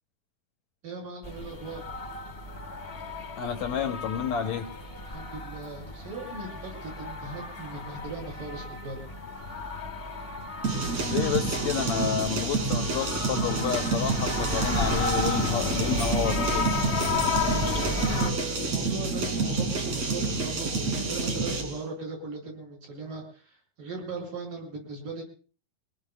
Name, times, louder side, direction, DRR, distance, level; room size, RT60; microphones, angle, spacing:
voice 1, 0.8-1.8 5.1-9.0 17.5-25.2, right 3 dB, 70° right, -1 dB, 9.0 m, -38 dB
sound 1, 1.2-18.3, left 3 dB, 25° left, 1.2 m, -33 dB
voice 2, 3.4-4.7 11.0-16.7, left 8 dB, 70° left, 6 dB, 1.8 m, -30 dB
sound 2, 10.6-21.8, right 4 dB, 50° right, 3.6 m, -29 dB
25.5 x 19.0 x 2.3 m, 0.40 s
omnidirectional pair, 4.0 m